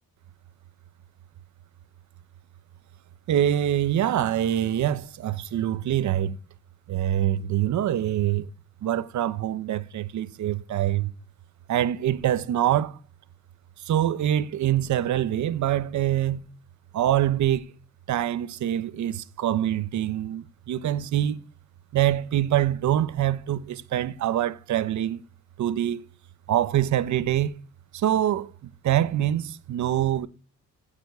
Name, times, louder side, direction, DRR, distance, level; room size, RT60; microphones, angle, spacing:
voice 1, 3.3-6.4 6.9-8.5 8.8-11.1 11.7-13.0 13.8-16.4 16.9-17.7 18.1-21.4 21.9-25.2 25.6-26.0 26.5-27.6 27.9-30.3, right 11 dB, 70° right, 1.2 m, -25 dB
16.0 x 7.3 x 7.1 m
cardioid pair, 90°, 30 cm